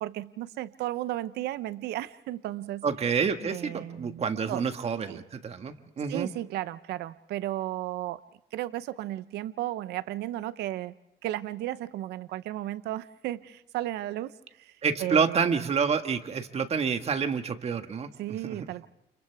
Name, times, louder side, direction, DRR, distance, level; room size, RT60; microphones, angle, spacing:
voice 1, 0.0-2.8 3.5-4.2 4.5-4.6 5.1-5.2 6.1-8.2 8.5-10.9 11.2-15.5 18.2-18.9, right 14 dB, 75° right, 14 dB, 0.8 m, -34 dB
voice 2, 2.8-6.3 14.8-18.7, right 6 dB, 40° right, 7 dB, 1.7 m, -28 dB
29.5 x 29.5 x 3.5 m, 0.86 s
cardioid pair, 110°, 17 cm